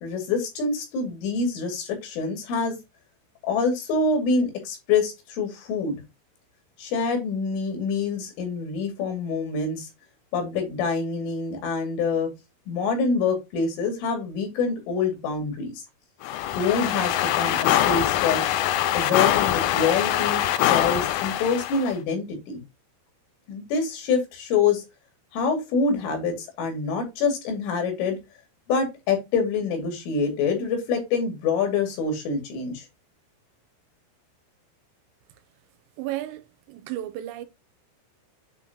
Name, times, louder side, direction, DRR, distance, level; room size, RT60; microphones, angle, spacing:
voice 1, 0.0-2.8 3.4-6.0 6.8-9.9 10.3-12.3 12.7-15.7 16.6-18.4 18.9-22.6 23.5-24.8 25.3-28.2 28.7-32.8, left 4 dB, 70° left, 4.9 m, -26 dB
sound 1, 16.2-21.9, left 12 dB, 85° left, 3.3 m, -23 dB
voice 2, 36.0-37.5, right 14 dB, 80° right, 3.3 m, -33 dB
9.4 x 4.4 x 2.9 m
omnidirectional pair, 5.9 m